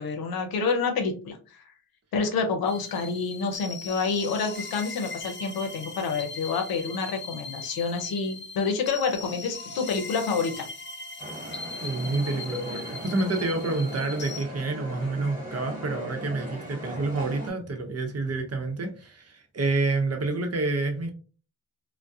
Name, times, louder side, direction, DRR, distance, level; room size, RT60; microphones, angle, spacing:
voice 1, 0.0-1.6 2.1-10.7, left 5 dB, 80° left, 4 dB, 0.7 m, -28 dB
sound 1, 2.7-14.4, left 3 dB, 30° left, 0.5 m, -39 dB
sound 2, 11.2-17.5, equal, 20° right, 1.4 m, -38 dB
voice 2, 11.8-21.1, right 3 dB, 45° right, 4 dB, 0.8 m, -28 dB
2.2 x 2.2 x 2.6 m, 0.36 s
supercardioid pair, 40°, 35 cm